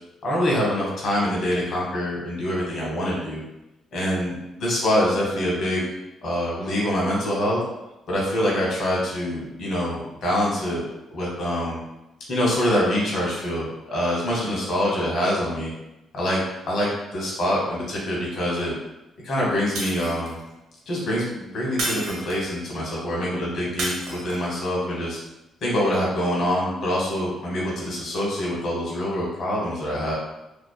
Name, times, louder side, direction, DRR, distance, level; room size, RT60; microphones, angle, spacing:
voice 1, 0.2-3.4 3.9-5.8 6.2-7.6 8.1-10.8 11.1-11.8 12.3-15.7 16.1-18.8 19.2-20.4 20.9-25.2 25.6-30.1, equal, 60° left, -4 dB, 1.0 m, -25 dB
Shatter, 19.8-20.5 21.8-22.6 23.8-24.6, right 2 dB, 80° right, 0.7 m, -31 dB
2.8 x 2.4 x 2.2 m, 0.95 s
cardioid pair, 90°, 0 cm